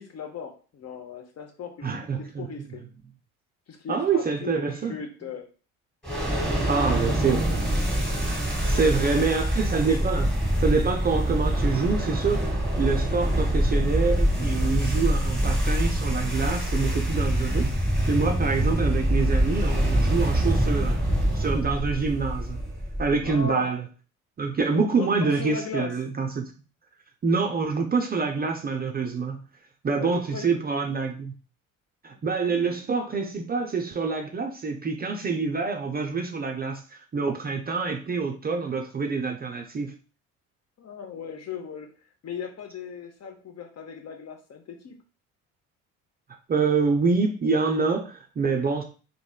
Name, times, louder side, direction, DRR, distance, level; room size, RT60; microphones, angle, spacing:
voice 1, 0.0-1.9 2.2-2.8 3.7-5.5 6.5-7.4 8.7-9.3 23.2-23.7 25.0-26.0 29.9-30.7 32.1-32.7 40.8-45.0, left 6 dB, 40° left, 5 dB, 0.6 m, -38 dB
voice 2, 1.8-2.5 3.9-4.9 6.7-7.6 8.5-12.4 12.8-21.0 21.3-22.6 23.0-23.9 24.4-26.5 27.2-29.4 29.8-31.3 32.0-39.9 46.5-48.8, right 4 dB, 25° right, 3 dB, 0.4 m, -26 dB
sound 1, 6.0-23.4, equal, ahead, 1.3 m, -25 dB
2.9 x 2.7 x 2.2 m, 0.36 s
hypercardioid pair, 55°, 39 cm